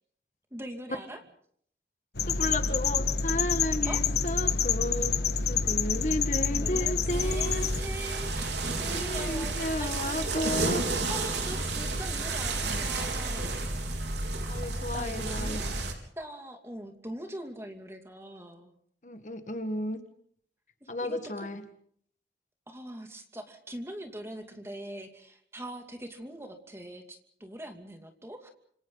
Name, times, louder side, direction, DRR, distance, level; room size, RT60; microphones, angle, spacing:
voice 1, 0.5-1.2 3.9-4.0 6.5-9.5 9.8-10.7 11.1-13.7 14.9-15.6 16.2-18.7 20.8-21.5 22.7-28.5, right 1 dB, 15° right, 4 dB, 2.6 m, -42 dB
sound 1, 2.1-7.8, left 5 dB, 70° left, 1.4 m, -28 dB
voice 2, 2.3-5.2 5.5-7.7 8.9-10.8 14.5-15.6 19.0-20.0 20.9-21.6, left 1 dB, 45° left, 8 dB, 1.7 m, -33 dB
sound 2, 7.1-15.9, right 2 dB, 80° right, 4.2 m, -31 dB
30.0 x 27.0 x 4.0 m, 0.62 s
head